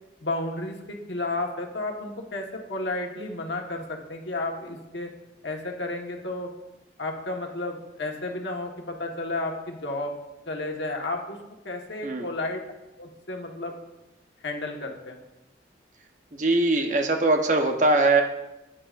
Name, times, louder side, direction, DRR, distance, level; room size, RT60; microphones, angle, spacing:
voice 1, 0.2-5.1 5.4-6.5 7.0-10.1 10.5-11.4 11.6-12.6 13.0-13.8 14.4-15.2, left 2 dB, 70° left, 2 dB, 1.4 m, -32 dB
voice 2, 16.4-18.2, right 2 dB, 40° right, 4 dB, 0.9 m, -21 dB
14.0 x 9.8 x 2.5 m, 0.99 s
head